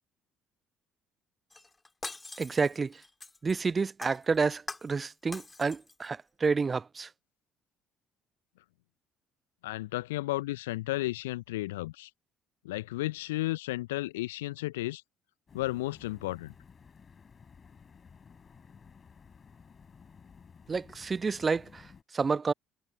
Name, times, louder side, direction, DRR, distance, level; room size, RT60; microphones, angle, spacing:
Shatter, 1.5-3.6 4.0-5.0 5.3-6.1 6.4-6.5, left 3 dB, 15° left, 3.3 m, -43 dB
voice 1, 2.4-3.0 3.4-7.1 20.7-21.8 22.1-22.5, right 4 dB, 30° right, 0.4 m, -29 dB
voice 2, 9.6-12.1 12.6-15.0 15.5-16.5, left 18 dB, 70° left, 1.1 m, -33 dB
sound 1, 15.5-22.0, left 6 dB, 35° left, 6.1 m, -55 dB
figure-of-eight pair, 50°, 0 cm